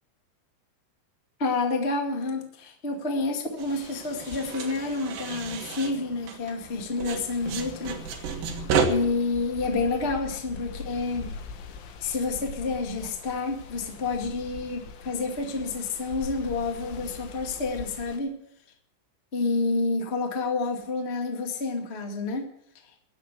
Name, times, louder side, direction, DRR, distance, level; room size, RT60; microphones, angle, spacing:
voice 1, 1.4-8.0 8.9-11.3 12.0-18.4 19.3-22.5, left 3 dB, 35° left, 2 dB, 1.0 m, -29 dB
sound 1, 3.6-6.7 7.0-8.9, right 6 dB, 70° right, 3.7 m, -31 dB
sound 2, 3.7-18.2, left 5 dB, 85° left, 3.9 m, -43 dB
18.5 x 7.6 x 8.3 m, 0.73 s
omnidirectional pair, 5.3 m